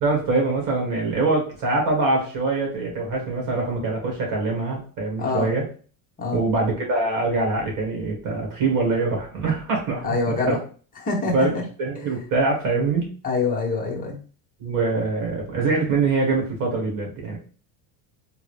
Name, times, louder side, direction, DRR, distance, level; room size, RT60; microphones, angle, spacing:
voice 1, 0.0-5.6 6.3-10.6 11.3-13.1 14.6-17.4, right 3 dB, 45° right, 0 dB, 1.8 m, -24 dB
voice 2, 5.2-5.5 6.2-6.4 10.0-10.6 11.0-11.5 13.2-14.2, left 3 dB, 20° left, -1 dB, 0.9 m, -25 dB
3.7 x 2.8 x 3.3 m, 0.40 s
cardioid pair, 160°, 42 cm